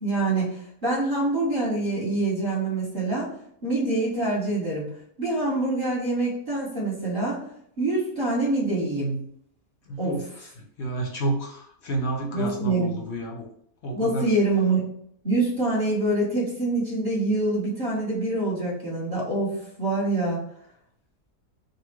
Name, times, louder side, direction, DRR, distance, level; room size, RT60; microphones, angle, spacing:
voice 1, 0.0-3.3 3.6-4.9 5.2-7.4 7.8-9.2 10.0-10.1 12.3-13.0 13.9-14.8 15.2-20.4, right 2 dB, 35° right, -9 dB, 1.4 m, -25 dB
voice 2, 9.8-13.5 13.8-14.3, right 2 dB, 60° left, 0 dB, 0.7 m, -30 dB
3.9 x 2.3 x 4.4 m, 0.68 s
omnidirectional pair, 1.7 m